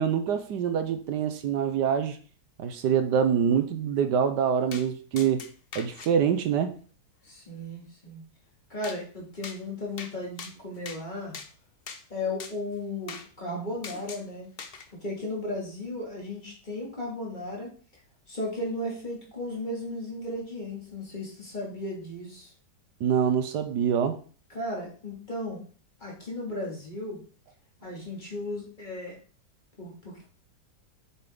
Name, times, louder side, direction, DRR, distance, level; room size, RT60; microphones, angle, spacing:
voice 1, 0.0-2.2 2.6-5.4 5.7-6.8 23.0-24.2, right 8 dB, 75° right, 1.3 m, -25 dB
sound 1, 4.7-4.9 5.2-6.1 8.8-9.0 9.4-9.6 10.0-10.1 10.4-11.0 11.3-11.5 11.9-12.0 12.4-12.5 13.1-13.3 13.8-14.2 14.6-14.9, left 5 dB, 45° left, 0.8 m, -41 dB
voice 2, 7.2-8.2 8.7-11.4 12.1-14.5 15.0-17.7 18.3-22.5 24.5-25.6 26.0-27.2 27.8-29.2 29.8-30.2, left 1 dB, 25° left, 2.9 m, -35 dB
7.1 x 6.8 x 3.9 m
omnidirectional pair, 1.9 m